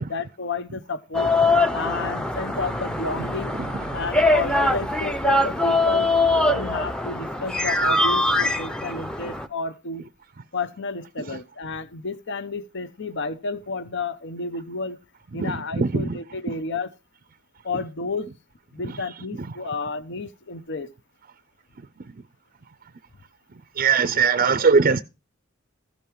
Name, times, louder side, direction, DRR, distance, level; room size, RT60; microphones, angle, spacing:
voice 1, 0.0-1.3 1.7-3.6 3.9-6.1 6.5-10.0 10.5-15.0 15.3-16.9 17.6-18.3 18.7-20.9, left 3 dB, 60° left, 0.9 m, -31 dB
sound 1, 1.1-9.5, left 2 dB, 5° left, 0.7 m, -22 dB
voice 2, 15.4-16.0 23.8-25.0, right 5 dB, 45° right, 0.5 m, -20 dB
15.0 x 5.4 x 4.7 m
head